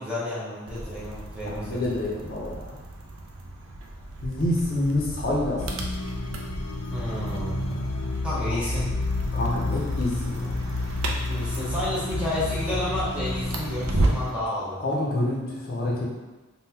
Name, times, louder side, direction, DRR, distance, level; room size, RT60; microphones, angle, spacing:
voice 1, 0.0-1.9 6.9-7.9 8.2-8.9 11.3-14.9, left 1 dB, 5° right, -8 dB, 0.7 m, -31 dB
sound 1, 0.7-14.4, right 1 dB, 75° right, 0.4 m, -33 dB
voice 2, 1.5-2.8 4.2-5.9 9.3-10.6 14.8-16.2, left 1 dB, 45° left, -5 dB, 0.6 m, -27 dB
sound 2, 5.6-14.3, left 2 dB, 85° left, 0.4 m, -31 dB
3.6 x 2.2 x 2.8 m, 1.2 s
head